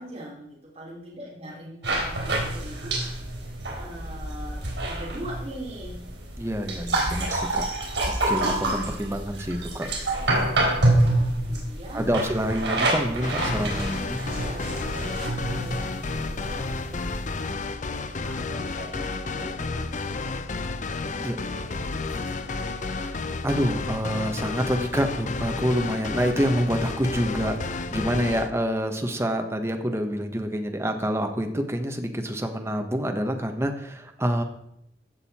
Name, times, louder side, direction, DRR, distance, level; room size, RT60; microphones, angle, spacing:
voice 1, 0.0-3.0 3.8-6.1 10.5-12.1 14.2-17.2 18.2-22.6, right 1 dB, 35° right, -5 dB, 3.6 m, -42 dB
sound 1, 1.8-17.5, right 2 dB, 80° right, 4.4 m, -27 dB
voice 2, 6.4-7.6 8.3-9.9 11.9-14.2 21.2-21.4 22.9-34.4, equal, 15° right, 4 dB, 1.2 m, -27 dB
sound 2, 13.2-28.5, left 3 dB, 45° left, 0.6 m, -31 dB
15.5 x 6.7 x 4.4 m, 0.78 s
head